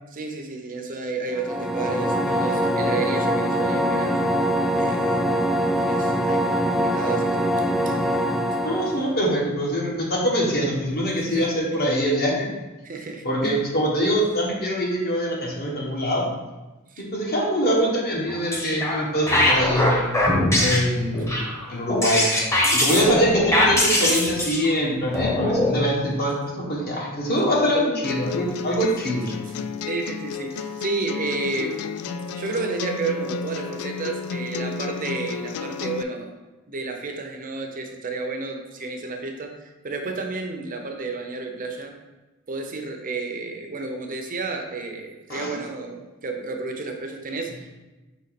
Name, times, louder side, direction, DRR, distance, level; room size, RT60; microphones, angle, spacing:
voice 1, 0.1-4.3 4.7-5.2 5.8-8.0 9.2-9.3 11.1-11.5 12.8-13.7 16.9-17.1 22.8-23.2 29.9-31.8 32.3-36.3 36.7-41.9 42.5-47.7, right 3 dB, 40° right, 4 dB, 0.6 m, -31 dB
sound 1, 1.3-9.1, equal, ahead, 0.4 m, -23 dB
voice 2, 8.6-12.5 13.2-16.2 17.0-20.1 20.6-22.2 22.7-26.4 26.7-29.3 45.3-45.5, equal, 45° left, -2 dB, 1.5 m, -23 dB
sound 2, 18.3-19.0 19.3-25.8, left 1 dB, 15° left, 1.0 m, -21 dB
sound 3, 28.0-36.0, left 6 dB, 75° left, 0.3 m, -32 dB
5.7 x 4.1 x 4.1 m, 1.1 s
head